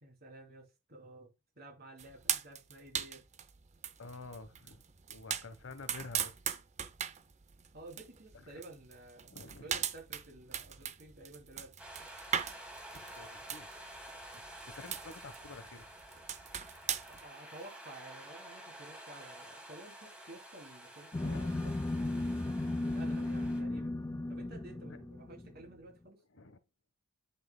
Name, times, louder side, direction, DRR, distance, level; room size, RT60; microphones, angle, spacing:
voice 1, 0.0-3.2 7.7-9.3 9.6-11.8 17.1-21.7 22.8-23.9 24.3-26.2, right 2 dB, 50° right, 3.1 m, -52 dB
sound 1, 2.0-17.2, right 9 dB, 35° right, 0.6 m, -40 dB
voice 2, 4.0-4.8 5.1-6.3 9.3-9.8 12.9-13.7 14.3-14.4 14.7-15.9 21.2-21.4 24.9-25.0 26.3-26.6, left 3 dB, 75° left, 1.1 m, -49 dB
sound 2, 11.8-23.6, right 1 dB, 5° right, 2.1 m, -50 dB
sound 3, 21.1-25.7, left 2 dB, 15° left, 0.3 m, -35 dB
10.0 x 5.8 x 2.2 m
head